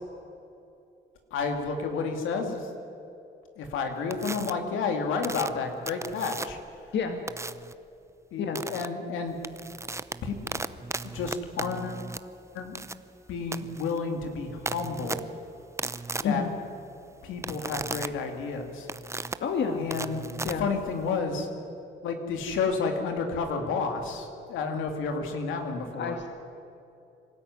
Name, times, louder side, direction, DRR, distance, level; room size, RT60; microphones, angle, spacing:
voice 1, 1.3-2.7 3.6-6.6 8.3-9.4 10.2-10.6 11.0-12.0 12.5-12.8 13.3-15.3 16.2-16.5 17.2-18.9 19.7-20.2 20.6-21.5 22.0-26.2, left 4 dB, 90° left, 4 dB, 2.5 m, -31 dB
sound 1, 4.1-4.5 5.2-6.7 7.3-7.7 8.5-8.9 9.3-21.2, right 3 dB, 15° right, 0.7 m, -36 dB
voice 2, 16.2-16.6 19.4-19.8 20.4-20.7 26.0-26.3, left 6 dB, 65° left, 5 dB, 1.8 m, -29 dB
24.0 x 13.0 x 9.6 m, 2.7 s
cardioid pair, 90°, 20 cm